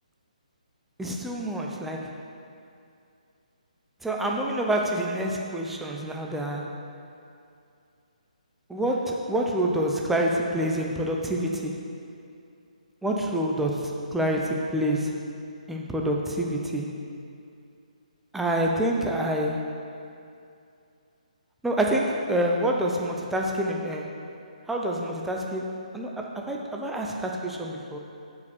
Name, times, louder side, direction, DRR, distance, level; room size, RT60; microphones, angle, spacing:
voice 1, 1.0-2.2 4.0-6.8 8.7-11.8 13.0-15.3 15.7-17.0 18.3-19.8 21.6-24.2 24.7-28.0, right 1 dB, 5° right, -1 dB, 0.7 m, -27 dB
9.3 x 5.3 x 6.7 m, 2.5 s
figure-of-eight pair, 140°, 4 cm